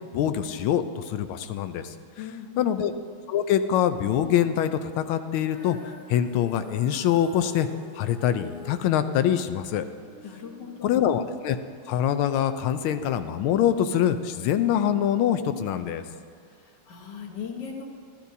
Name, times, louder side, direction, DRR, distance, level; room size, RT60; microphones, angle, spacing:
voice 1, 0.0-1.9 2.6-2.9 3.3-5.8 6.1-7.7 7.9-9.9 10.8-11.6 11.9-16.0, left 10 dB, 80° left, 10 dB, 1.4 m, -24 dB
voice 2, 2.2-2.7 10.2-11.1 16.4-17.9, left 7 dB, 60° left, 0 dB, 1.7 m, -39 dB
Female singing, 5.5-11.7, left 1 dB, 5° right, 1.3 m, -47 dB
13.0 x 13.0 x 2.7 m, 2.3 s
omnidirectional pair, 2.3 m